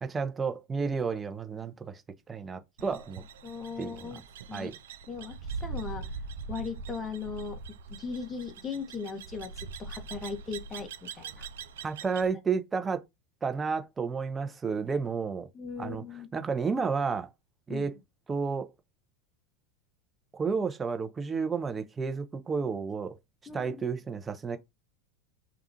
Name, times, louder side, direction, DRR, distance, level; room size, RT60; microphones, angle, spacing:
voice 1, 0.0-2.0 2.3-3.2 3.8-4.2 4.5-4.8 11.8-13.0 13.4-15.5 15.8-16.0 16.3-17.3 17.7-17.9 18.3-18.7 20.3-23.2 23.5-24.6, right 5 dB, 20° right, 0.6 m, -31 dB
sound 1, 2.8-12.3, right 4 dB, 70° right, 0.4 m, -42 dB
voice 2, 3.4-4.2 4.5-4.7 5.1-6.1 6.5-7.6 7.9-11.5 15.5-16.3 17.7-17.9 23.5-23.9, left 5 dB, 25° left, 1.1 m, -38 dB
4.9 x 2.3 x 2.7 m
hypercardioid pair, 85°, 0 cm